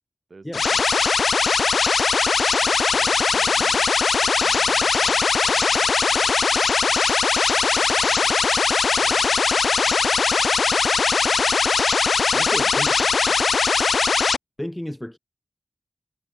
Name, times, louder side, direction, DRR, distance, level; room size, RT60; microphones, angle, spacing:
voice 1, 0.3-1.9 2.5-7.2 7.5-8.6 8.9-11.6, right 3 dB, 60° right, 4.6 m, -51 dB
sound 1, 0.5-14.4, left 5 dB, 85° left, 0.4 m, -20 dB
voice 2, 12.3-12.9 13.3-13.4 14.6-15.2, left 1 dB, 10° left, 3.9 m, -32 dB
cardioid pair, 55°, 0 cm